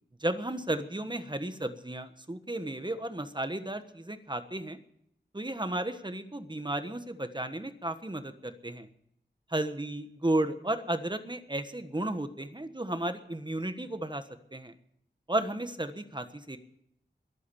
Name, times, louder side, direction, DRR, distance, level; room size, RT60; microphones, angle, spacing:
voice 1, 0.2-4.8 5.3-8.9 9.5-14.2 14.5-14.7 15.3-16.6, right 1 dB, 25° right, 9 dB, 1.3 m, -33 dB
22.0 x 8.7 x 7.0 m, 0.71 s
wide cardioid pair, 65°, 18 cm